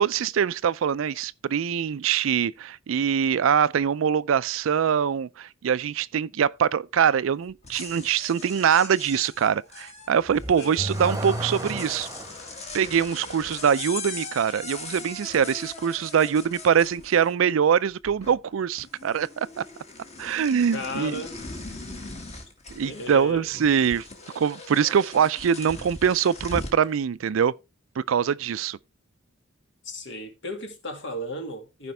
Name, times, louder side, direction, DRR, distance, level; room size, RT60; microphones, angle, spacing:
voice 1, 0.0-12.1 12.7-19.6 20.2-21.2 22.7-24.0 24.4-27.5 28.0-28.8, right 7 dB, 80° right, 0.4 m, -23 dB
sound 1, 7.5-17.5 17.8-18.5 18.8-26.8, left 3 dB, 35° left, 1.9 m, -40 dB
Car / Accelerating revving vroom, 10.2-12.5, right 1 dB, 15° right, 1.0 m, -32 dB
voice 2, 20.7-21.4 22.8-23.5 29.8-31.9, left 1 dB, 65° left, 2.1 m, -35 dB
15.0 x 5.1 x 3.3 m
head